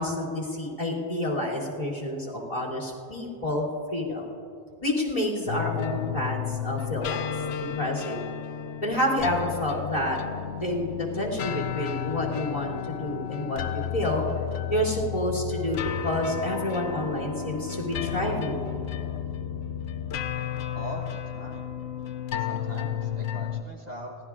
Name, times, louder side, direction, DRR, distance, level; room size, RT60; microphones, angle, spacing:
voice 1, 0.0-4.2 4.8-7.2 7.6-8.2 8.8-10.2 10.6-14.2 14.7-18.7, left 1 dB, 30° left, -2 dB, 3.0 m, -29 dB
sound 1, 5.5-23.6, left 9 dB, 75° left, 0.8 m, -32 dB
voice 2, 20.7-21.7 22.3-24.2, right 1 dB, 40° right, -1 dB, 1.2 m, -40 dB
25.5 x 17.0 x 2.4 m, 2.6 s
omnidirectional pair, 1.1 m